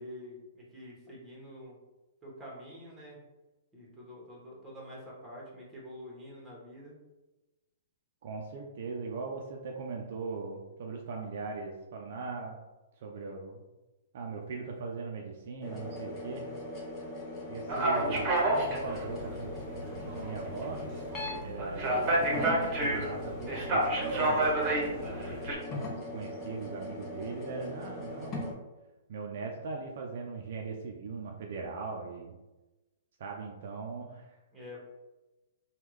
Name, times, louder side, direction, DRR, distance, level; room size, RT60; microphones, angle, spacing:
voice 1, 0.0-1.7 2.2-3.2 3.7-7.0 34.5-34.8, equal, 10° right, -4 dB, 1.3 m, -47 dB
voice 2, 8.2-12.6 13.0-13.6 14.1-16.4 17.5-19.5 20.0-20.8 21.4-25.1 25.8-28.6 29.1-32.3 33.2-34.4, right 4 dB, 60° right, 1 dB, 0.5 m, -40 dB
sound 1, 15.6-21.4 21.8-28.5, left 1 dB, 25° left, 0.9 m, -40 dB
sound 2, 17.7-25.5, right 1 dB, 35° right, 1.0 m, -30 dB
3.5 x 2.3 x 3.1 m, 1.1 s
hypercardioid pair, 135°, 0 cm